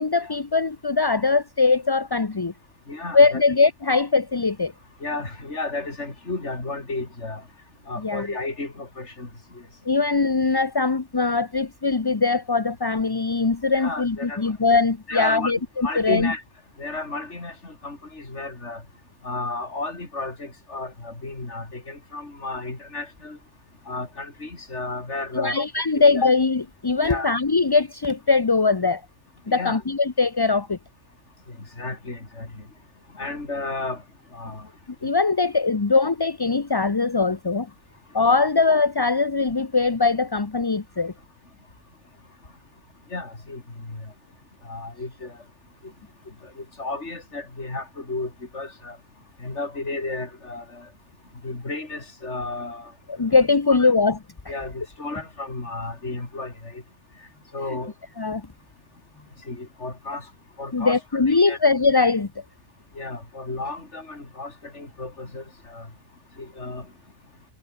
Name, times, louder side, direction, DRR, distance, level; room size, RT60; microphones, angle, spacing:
voice 1, 0.0-2.5 3.1-4.7 8.0-8.3 9.8-16.3 25.3-29.0 29.5-30.8 35.0-37.7 38.1-41.1 53.1-54.2 58.2-58.5 60.7-62.3, left 4 dB, 20° left, 0.6 m, -21 dB
voice 2, 2.9-3.4 5.0-7.4 7.9-9.3 13.7-14.5 15.1-15.5 15.8-16.4 16.8-18.8 19.2-23.4 23.9-25.6 25.9-26.0 27.0-27.3 29.5-29.8 31.8-32.5 33.2-34.0 34.3-34.7 43.1-43.6 43.9-44.0 44.6-45.3 46.6-49.0 49.4-50.9 51.4-52.9 53.7-53.9 54.5-56.8 57.5-57.9 59.5-60.2 60.6-61.0 61.3-61.6 63.0-65.9 66.4-66.8, left 3 dB, 55° left, 4.7 m, -33 dB
omnidirectional pair, 1.5 m